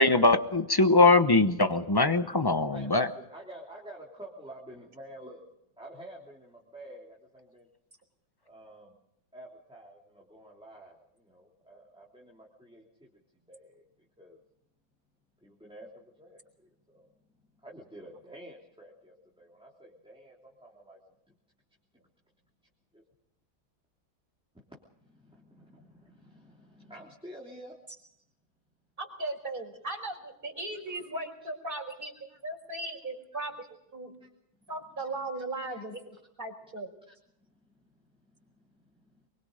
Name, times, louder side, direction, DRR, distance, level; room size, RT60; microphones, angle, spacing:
voice 1, 0.0-3.1, left 2 dB, 30° left, 10 dB, 0.4 m, -22 dB
voice 2, 2.5-5.4 5.8-7.7 8.5-9.0 9.3-13.1 13.5-13.8 14.2-14.4 15.4-17.1 17.5-21.0 22.9-23.0 24.5-24.6 25.0-27.8 30.9-31.1 32.3-32.4 34.1-34.6 34.9-35.1 35.7-35.8 37.1-37.2 37.4-37.5 38.0-39.3, right 1 dB, 5° right, -3 dB, 3.0 m, -50 dB
voice 3, 29.0-33.5 33.9-34.1 34.7-36.9, right 2 dB, 25° right, 2 dB, 5.0 m, -37 dB
24.5 x 23.0 x 5.1 m, 0.78 s
omnidirectional pair, 2.1 m